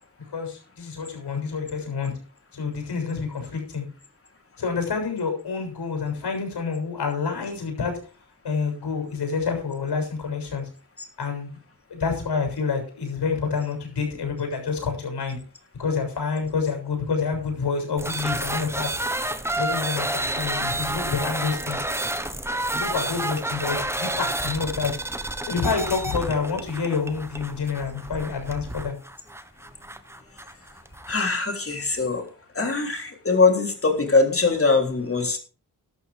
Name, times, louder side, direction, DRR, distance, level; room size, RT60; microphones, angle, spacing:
voice 1, 0.3-2.1 2.5-3.8 4.6-7.9 8.4-10.7 11.2-11.6 11.9-15.4 15.8-18.9 19.5-21.8 22.7-24.9 25.5-29.0, left 5 dB, 90° left, 4 dB, 6.9 m, -28 dB
sound 1, 18.0-31.2, right 1 dB, 5° right, 1.1 m, -30 dB
voice 2, 31.1-32.3 32.6-35.4, left 3 dB, 35° left, 4 dB, 3.4 m, -22 dB
13.0 x 12.5 x 3.5 m, 0.36 s
wide cardioid pair, 105°, 39 cm